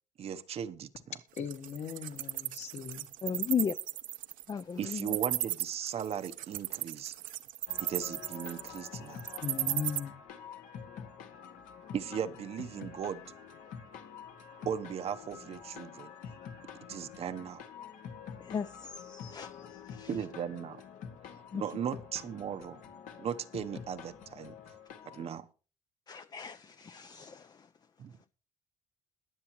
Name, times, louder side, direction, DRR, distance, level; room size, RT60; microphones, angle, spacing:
voice 1, 0.2-1.2 4.8-7.1 7.8-9.2 11.9-13.2 14.7-16.1 16.9-17.6 20.1-20.8 21.5-22.8 23.2-24.6 25.1-25.5 28.0-28.3, right 8 dB, 50° right, 0.8 m, -37 dB
voice 2, 1.3-3.0 9.4-10.2, left 7 dB, 55° left, 2.0 m, -38 dB
Wild animals, 1.4-10.0, right 14 dB, 80° right, 0.9 m, -35 dB
voice 3, 3.2-3.7 4.5-5.2 18.4-20.1 21.5-21.6 26.1-27.7, left 7 dB, 30° left, 0.5 m, -36 dB
sound 1, 7.7-25.3, left 7 dB, 75° left, 1.8 m, -47 dB
21.0 x 7.6 x 3.0 m
cardioid pair, 115°, 14 cm